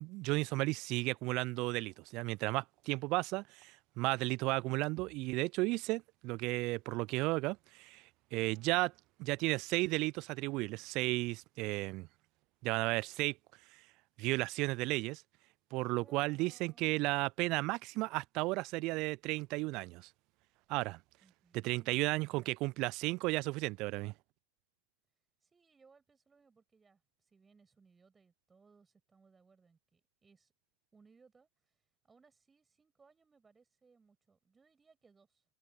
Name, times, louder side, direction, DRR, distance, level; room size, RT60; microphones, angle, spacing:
voice 1, 0.0-8.0 8.3-8.9 9.2-12.1 12.6-13.4 13.7-13.8 14.2-15.2 15.7-20.1 20.7-21.0 21.5-24.1, right 22 dB, 45° right, 0.4 m, -34 dB
voice 2, 8.3-8.9 15.9-16.9 21.2-22.5 25.4-30.5 30.9-31.8 32.0-35.4, right 4 dB, 15° right, 6.2 m, -66 dB
figure-of-eight pair, 90°, 0 cm